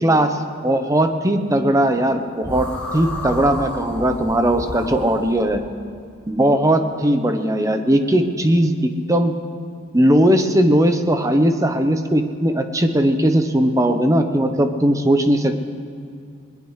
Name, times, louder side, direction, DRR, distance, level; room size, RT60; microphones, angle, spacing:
voice 1, 0.0-0.4 0.6-2.7 2.9-5.6 6.3-9.3 9.9-15.6, right 1 dB, 15° right, 6 dB, 0.8 m, -18 dB
sound 1, 2.4-5.6, equal, 5° left, 2.6 m, -31 dB
21.0 x 20.5 x 3.3 m, 2.4 s
head